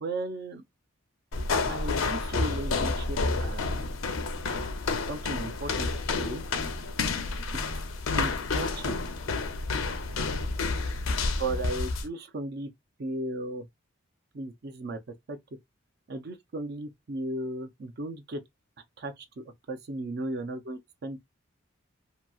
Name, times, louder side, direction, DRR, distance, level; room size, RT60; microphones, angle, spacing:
voice 1, 0.0-0.6 1.7-3.7 5.1-6.4 8.1-9.0 11.4-12.7 13.0-13.7 14.3-15.0 15.3-15.4 16.1-18.4 19.0-21.2, right 2 dB, 50° right, 0.5 m, -35 dB
sound 1, 1.3-12.1, left 3 dB, 80° left, 0.5 m, -30 dB
2.8 x 2.7 x 2.3 m
head